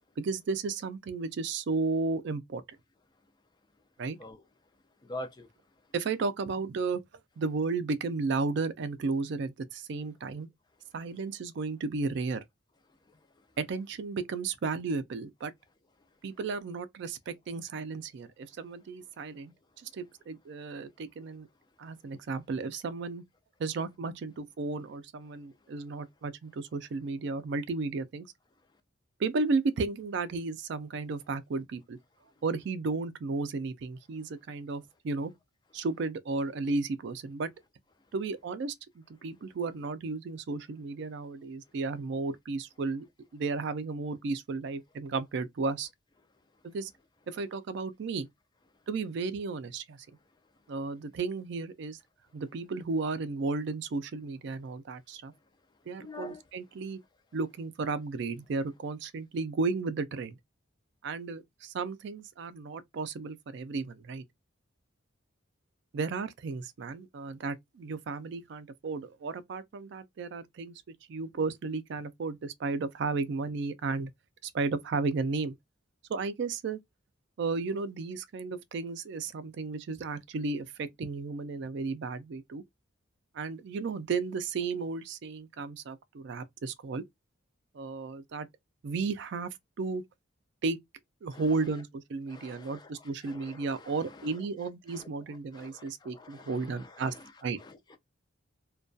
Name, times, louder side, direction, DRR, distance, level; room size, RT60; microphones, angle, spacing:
voice 1, 0.2-2.6 4.0-4.2 5.9-7.0 7.4-10.5 10.9-12.4 13.6-15.5 16.2-21.5 21.8-23.2 23.6-28.3 29.2-32.0 32.4-35.3 35.7-37.5 38.1-43.1 43.3-45.9 46.6-46.9 47.3-48.3 48.9-50.1 50.7-52.0 52.3-55.3 55.9-57.0 57.3-60.4 61.0-64.2 65.9-70.8 71.1-74.1 74.4-75.5 76.1-76.8 77.4-82.6 83.3-87.0 87.7-88.5 88.8-89.5 89.8-90.0 90.6-90.8 91.2-97.1 97.4-97.6, right 4 dB, 55° right, 0.3 m, -34 dB
voice 2, 5.0-5.5 56.0-56.4 91.3-91.4 92.3-94.0 94.9-95.1 95.5-97.2 97.6-98.0, left 2 dB, 20° left, 0.3 m, -46 dB
2.2 x 2.2 x 2.5 m
head